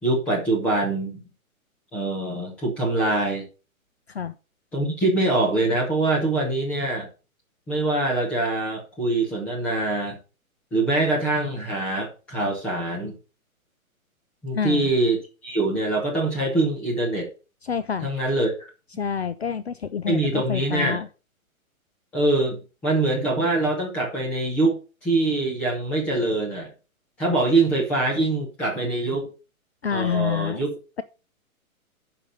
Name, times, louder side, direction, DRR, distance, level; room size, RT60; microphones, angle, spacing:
voice 1, 0.0-1.2 1.9-3.5 4.7-7.1 7.7-10.2 10.7-13.1 14.4-17.3 18.0-18.7 20.1-21.0 22.1-26.7 27.2-29.3 29.9-30.7, right 2 dB, 5° left, -2 dB, 0.9 m, -24 dB
voice 2, 14.5-14.9 17.6-18.1 19.0-21.1 29.8-30.6, left 7 dB, 50° left, 14 dB, 0.5 m, -27 dB
9.9 x 6.0 x 5.4 m, 0.33 s
hypercardioid pair, 180°, 43 cm